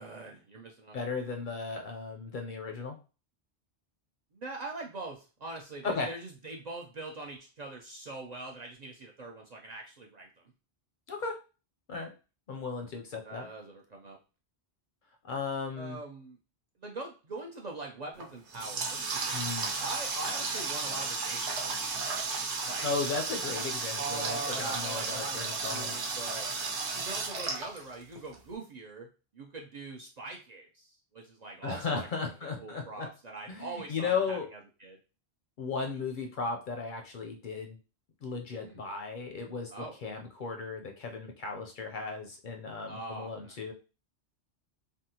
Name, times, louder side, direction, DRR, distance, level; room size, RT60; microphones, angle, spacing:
voice 1, 0.0-1.0 4.3-10.3 13.2-14.2 15.8-16.4 16.8-21.9 22.7-22.9 24.0-26.5 27.0-29.1 29.3-32.3 32.6-35.0 38.6-38.8 39.7-40.0 42.9-43.6, right 3 dB, 55° right, -1 dB, 0.5 m, -43 dB
voice 2, 0.9-3.0 5.8-6.1 11.1-11.4 11.9-12.1 12.5-13.5 15.2-16.0 19.3-19.7 22.8-26.0 31.6-33.1 33.5-34.5 35.6-37.8 38.2-43.7, left 4 dB, 60° left, 3 dB, 0.6 m, -35 dB
Water tap faucet, 18.2-28.4, right 4 dB, 80° right, 1.0 m, -34 dB
3.5 x 2.2 x 2.7 m, 0.33 s
omnidirectional pair, 1.1 m